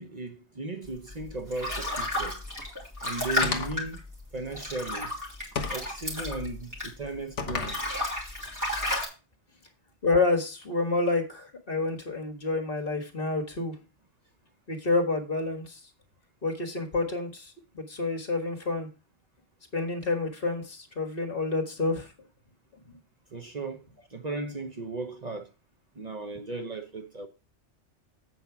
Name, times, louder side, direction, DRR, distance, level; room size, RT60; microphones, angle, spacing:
voice 1, 0.0-2.4 3.0-4.0 4.3-5.1 5.7-7.8 23.3-23.8 24.1-25.5 26.0-27.3, right 3 dB, 40° right, 0.9 m, -36 dB
sound 1, 1.1-7.2 7.5-9.1, left 1 dB, 15° right, 3.0 m, -32 dB
sound 2, 3.4-3.9 5.6-5.9 7.4-7.8, left 5 dB, 75° left, 1.5 m, -32 dB
voice 2, 10.0-13.8 14.7-15.8 16.4-18.9 19.7-22.1 22.9-23.0, left 3 dB, 50° left, 1.9 m, -28 dB
8.3 x 4.6 x 5.9 m
omnidirectional pair, 1.2 m